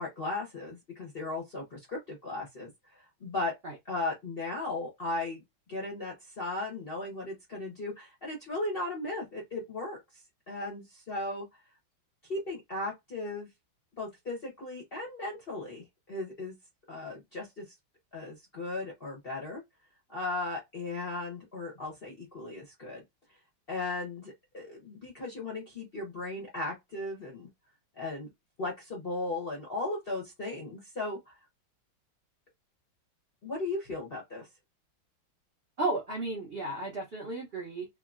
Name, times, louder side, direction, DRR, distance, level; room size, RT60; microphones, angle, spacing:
voice 1, 0.0-3.5 3.9-5.4 5.7-10.2 10.5-11.5 12.3-13.5 14.0-16.5 16.9-17.7 18.1-19.6 20.1-23.0 23.7-27.5 28.0-28.3 28.6-31.3 33.4-34.5, left 2 dB, 50° left, 0.7 m, -36 dB
voice 2, 35.8-37.9, right 2 dB, 60° right, 0.6 m, -33 dB
3.6 x 2.0 x 2.4 m
omnidirectional pair, 2.2 m